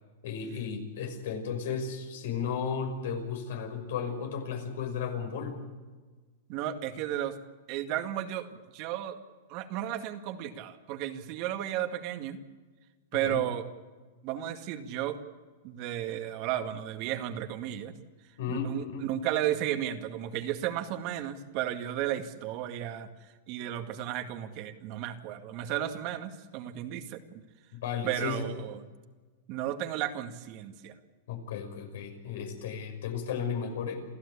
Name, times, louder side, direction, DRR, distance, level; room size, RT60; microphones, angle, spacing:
voice 1, 0.2-5.6 13.2-13.4 18.4-19.0 27.7-28.4 31.3-34.0, left 6 dB, 70° left, 5 dB, 5.9 m, -34 dB
voice 2, 6.5-7.4 7.7-8.5 8.7-9.2 9.5-12.4 13.1-13.7 14.2-15.2 15.6-17.9 18.5-27.4 28.0-28.9 29.5-30.9, right 11 dB, 45° right, 6 dB, 2.0 m, -34 dB
28.5 x 14.5 x 8.5 m, 1.3 s
hypercardioid pair, 140°, 0 cm